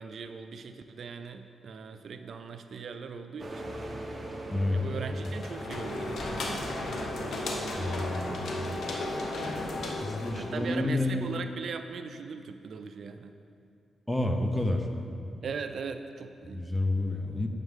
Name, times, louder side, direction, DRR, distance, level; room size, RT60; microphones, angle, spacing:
voice 1, 0.0-3.7 4.7-6.7 7.2-8.4 8.7-8.9 10.4-13.3 15.4-16.7, right 5 dB, 60° right, 8 dB, 0.3 m, -40 dB
sound 1, 3.4-9.0, right 1 dB, 30° right, 0.8 m, -41 dB
voice 2, 4.5-4.8 7.8-8.4 9.8-11.4 14.1-14.9 16.4-17.5, left 2 dB, 10° left, 4 dB, 0.6 m, -29 dB
sound 2, 5.2-10.7, left 2 dB, 70° left, 1.0 m, -35 dB
9.4 x 6.3 x 3.6 m, 2.5 s
wide cardioid pair, 130°, 0 cm